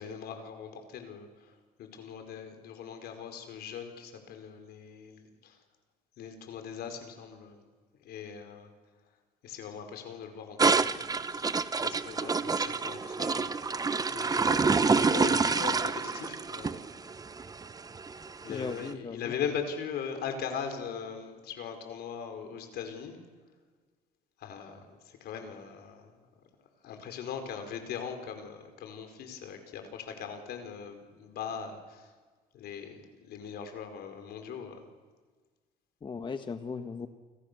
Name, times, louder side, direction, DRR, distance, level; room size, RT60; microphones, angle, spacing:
voice 1, 0.0-5.6 6.2-7.7 8.0-8.7 9.4-16.8 18.4-23.2 24.4-26.3 26.8-32.1 32.5-34.9, left 7 dB, 70° left, 6 dB, 4.9 m, -40 dB
sound 1, 10.6-18.8, right 4 dB, 20° right, 1.0 m, -28 dB
voice 2, 18.5-19.2 36.0-37.1, left 5 dB, 30° left, 8 dB, 1.4 m, -37 dB
29.0 x 26.5 x 6.9 m, 1.4 s
cardioid pair, 110°, 17 cm